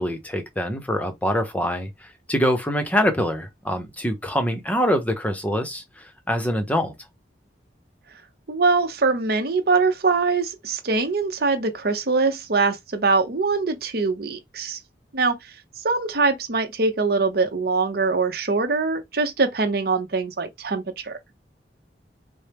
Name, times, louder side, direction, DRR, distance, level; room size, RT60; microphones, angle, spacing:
voice 1, 0.0-6.9, equal, 10° left, 0.7 m, -24 dB
voice 2, 8.5-14.8 15.1-15.4 15.8-21.2, right 4 dB, 60° right, 0.7 m, -23 dB
4.3 x 2.0 x 3.4 m
head